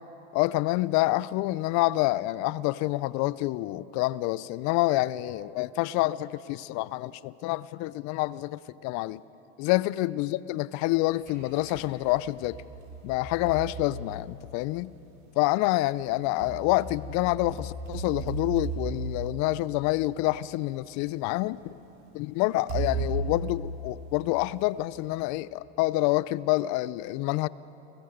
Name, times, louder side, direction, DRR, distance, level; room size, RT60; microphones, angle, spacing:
voice 1, 0.3-9.2 9.6-12.6 13.0-14.9 15.4-21.7 22.1-27.5, left 18 dB, 50° left, 20 dB, 0.6 m, -27 dB
sound 1, 10.9-11.9 12.4-14.8 16.0-20.4 21.2-21.3 22.7-24.6, right 3 dB, 60° right, 5.3 m, -36 dB
30.0 x 21.0 x 5.2 m, 2.9 s
hypercardioid pair, 100°, 37 cm